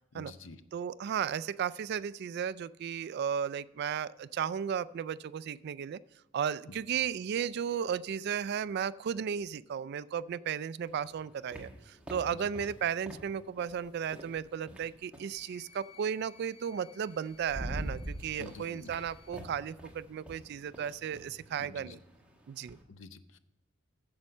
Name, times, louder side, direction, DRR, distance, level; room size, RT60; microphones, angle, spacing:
voice 1, 0.1-0.6 6.7-6.8 12.3-12.5 18.4-18.9 21.6-22.0 22.9-23.4, left 3 dB, 70° left, 11 dB, 0.7 m, -48 dB
voice 2, 0.7-6.0 6.3-22.0 22.5-22.8, right 8 dB, 55° right, 18 dB, 0.3 m, -35 dB
sound 1, 10.9-15.4 16.7-16.8 17.2-22.8, right 1 dB, 5° right, 1.3 m, -45 dB
Wind instrument woodwind instrument, 15.2-19.4, left 7 dB, 35° left, 1.6 m, -59 dB
9.7 x 7.2 x 6.5 m, 0.97 s
head